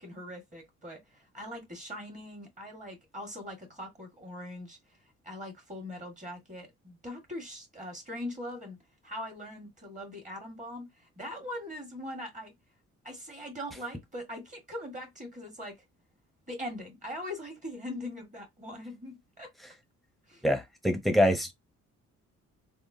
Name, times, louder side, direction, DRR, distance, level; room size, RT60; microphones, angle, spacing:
voice 1, 0.0-4.8 5.2-8.8 9.0-12.5 13.0-15.8 16.5-19.5 20.3-20.4, left 1 dB, 25° right, 1.6 m, -41 dB
voice 2, 20.4-21.5, equal, ahead, 0.9 m, -25 dB
3.6 x 2.2 x 2.7 m
cardioid pair, 90°, 30 cm